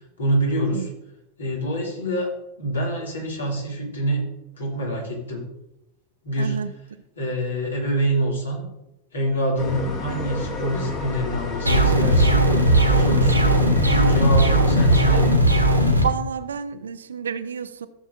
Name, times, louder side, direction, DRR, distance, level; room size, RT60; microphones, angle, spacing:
voice 1, 0.2-0.9 1.4-2.3 2.6-4.2 4.6-5.4 6.2-6.6 7.2-8.7 9.1-12.5 12.9-15.3, right 1 dB, 70° left, -1 dB, 2.6 m, -25 dB
voice 2, 6.4-6.7 16.0-17.9, right 7 dB, 65° right, 12 dB, 0.6 m, -29 dB
sound 1, 9.6-15.4, left 2 dB, 35° left, 1.9 m, -32 dB
sound 2, 11.7-16.0, right 1 dB, 85° right, 1.5 m, -17 dB
14.5 x 7.2 x 2.6 m, 0.93 s
figure-of-eight pair, 90°, 0 cm